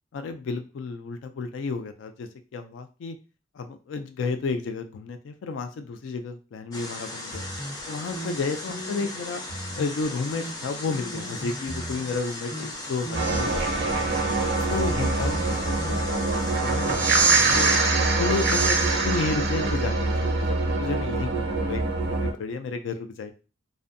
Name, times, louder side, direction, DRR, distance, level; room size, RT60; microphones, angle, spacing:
voice 1, 0.1-3.2 3.5-7.4 7.9-9.4 9.8-14.1 14.5-17.7 18.2-23.3, left 4 dB, 85° left, 8 dB, 0.3 m, -32 dB
sound 1, 6.7-17.8, left 2 dB, 20° left, 0.5 m, -37 dB
sound 2, 7.3-9.2 9.4-10.1 10.3-12.2 12.5-12.7 13.0-16.0, right 1 dB, 65° left, 0.9 m, -39 dB
sound 3, 13.1-22.3, right 3 dB, 60° right, 0.5 m, -24 dB
2.5 x 2.1 x 2.5 m, 0.33 s
head